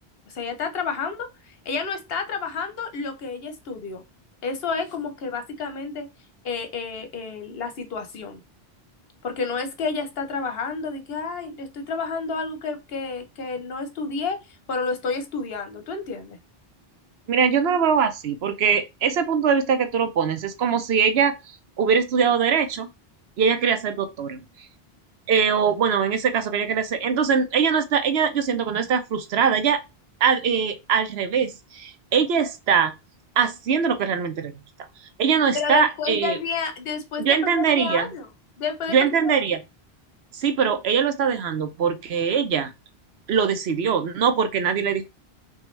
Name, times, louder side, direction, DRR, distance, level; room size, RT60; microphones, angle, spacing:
voice 1, 0.3-4.0 4.4-6.1 6.4-8.4 9.2-16.4 35.5-38.3 38.6-39.3, left 5 dB, 70° left, 1.1 m, -30 dB
voice 2, 17.3-21.3 21.8-22.9 23.4-24.4 25.3-29.8 30.2-32.9 33.4-34.5 35.2-36.4 37.2-38.1 38.9-39.6 40.3-42.7 43.3-45.1, right 6 dB, 80° right, 1.0 m, -22 dB
5.5 x 2.4 x 3.2 m
omnidirectional pair, 1.0 m